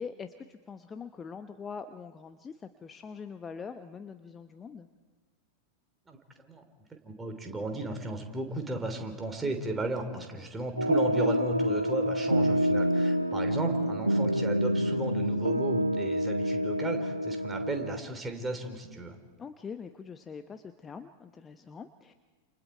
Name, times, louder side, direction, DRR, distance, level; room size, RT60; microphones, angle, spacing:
voice 1, 0.0-4.9 13.8-13.9 19.4-22.1, left 6 dB, 20° left, 9 dB, 0.9 m, -43 dB
voice 2, 7.0-19.2, right 2 dB, 15° right, 5 dB, 3.5 m, -35 dB
sound 1, 10.8-18.0, equal, 85° right, 0.7 m, -27 dB
29.0 x 29.0 x 4.6 m, 1.3 s
figure-of-eight pair, 90°, 0 cm